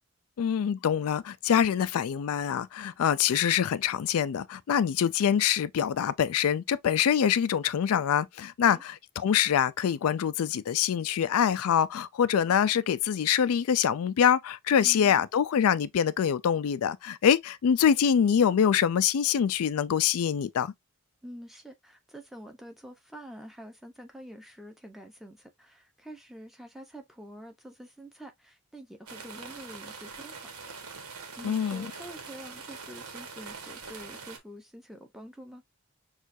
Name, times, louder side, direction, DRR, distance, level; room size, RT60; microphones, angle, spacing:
voice 1, 0.4-20.7 31.4-31.9, left 8 dB, 75° left, 0.4 m, -25 dB
voice 2, 14.8-15.3 21.2-30.5 31.4-35.6, equal, ahead, 0.7 m, -47 dB
sound 1, 29.1-34.4, right 5 dB, 90° right, 1.3 m, -43 dB
6.2 x 2.5 x 2.6 m
head